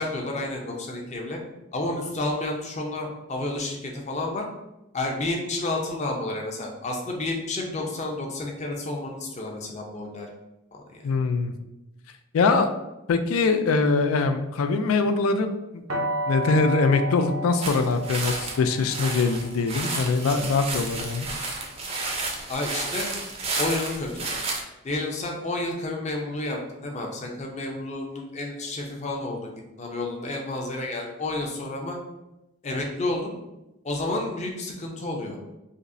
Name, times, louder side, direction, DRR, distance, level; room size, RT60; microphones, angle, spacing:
voice 1, 0.0-1.4 1.7-4.4 4.9-10.3 10.7-11.1 22.5-23.1 23.6-24.3 24.8-32.0 32.6-33.3 33.8-35.4, left 2 dB, 35° left, 1 dB, 0.5 m, -30 dB
voice 2, 11.0-11.5 12.3-12.7 13.1-21.3, left 4 dB, 90° left, 8 dB, 0.4 m, -23 dB
sound 1, 15.9-21.7, right 1 dB, 80° right, 0.9 m, -34 dB
sound 2, 17.6-24.6, right 3 dB, 30° right, 0.4 m, -32 dB
5.1 x 2.0 x 2.6 m, 0.95 s
head